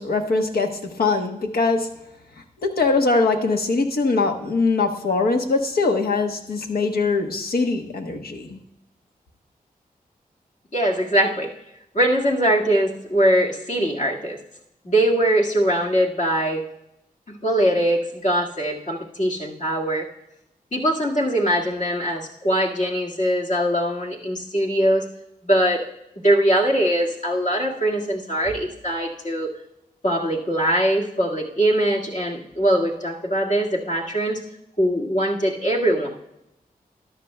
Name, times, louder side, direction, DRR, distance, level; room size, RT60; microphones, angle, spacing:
voice 1, 0.0-1.9 2.6-8.6, left 3 dB, 80° left, 5 dB, 1.1 m, -22 dB
voice 2, 10.7-11.5 11.9-14.4 14.8-16.6 17.3-20.0 20.7-25.0 25.4-25.8 26.2-29.5 30.0-34.4 34.8-36.1, right 1 dB, 55° left, -2 dB, 1.8 m, -21 dB
13.5 x 10.5 x 2.2 m, 0.85 s
cardioid pair, 65°, 16 cm